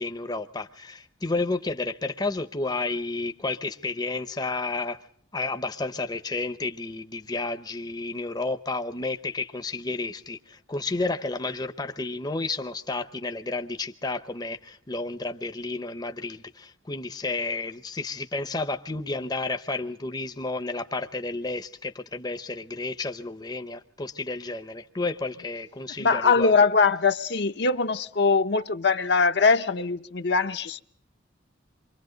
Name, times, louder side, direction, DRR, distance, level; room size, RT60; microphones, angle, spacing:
voice 1, 0.0-5.0 5.3-26.5, left 3 dB, 20° left, 0.7 m, -31 dB
voice 2, 26.0-30.8, left 4 dB, 60° left, 0.8 m, -22 dB
28.5 x 24.0 x 3.9 m
head